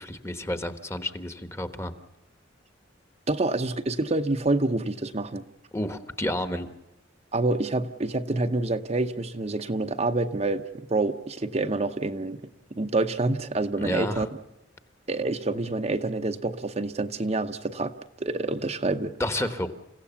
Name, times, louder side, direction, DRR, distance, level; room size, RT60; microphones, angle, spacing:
voice 1, 0.0-1.9 5.7-6.7 13.8-14.3 19.2-19.7, left 1 dB, 15° left, 10 dB, 1.2 m, -30 dB
voice 2, 3.3-5.4 7.3-12.4 12.7-14.3 15.1-19.1, right 2 dB, 35° right, 7 dB, 0.8 m, -27 dB
29.5 x 16.5 x 7.1 m, 1.0 s
head